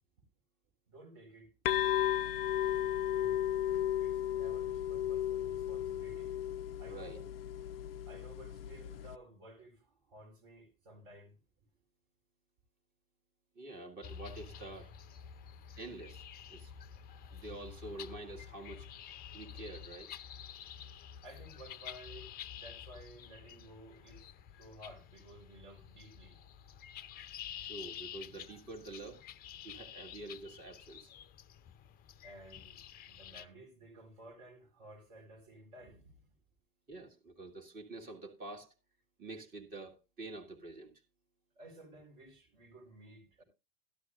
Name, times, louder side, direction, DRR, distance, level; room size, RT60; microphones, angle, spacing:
voice 1, 0.9-1.5 3.1-3.4 4.0-6.3 6.8-7.2 8.1-11.3 21.2-24.2 24.5-26.4 32.2-36.3 41.6-43.4, right 1 dB, 55° right, 4.6 m, -54 dB
sound 1, 1.6-9.1, left 11 dB, 75° left, 0.5 m, -34 dB
voice 2, 6.9-7.2 13.6-14.9 15.8-16.7 17.3-18.9 19.3-20.1 27.6-29.2 29.6-31.1 36.9-38.7 39.2-40.9, right 2 dB, 30° right, 2.1 m, -47 dB
sound 2, 14.0-33.5, left 9 dB, 30° left, 0.6 m, -49 dB
13.0 x 12.5 x 2.5 m
hypercardioid pair, 85°, 29 cm